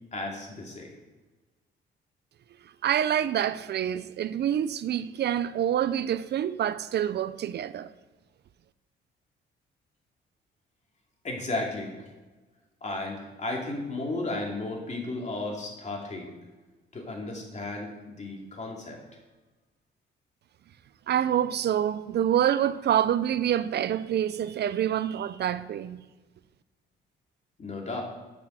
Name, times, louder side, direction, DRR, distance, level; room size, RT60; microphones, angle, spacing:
voice 1, 0.1-0.9 11.2-12.0 12.8-16.3 16.9-19.0 27.6-28.0, left 2 dB, 35° left, 2.7 m, -34 dB
voice 2, 2.8-7.9 21.1-26.0, right 10 dB, 55° right, 0.5 m, -26 dB
7.7 x 6.0 x 6.2 m
cardioid pair, 90°, 20 cm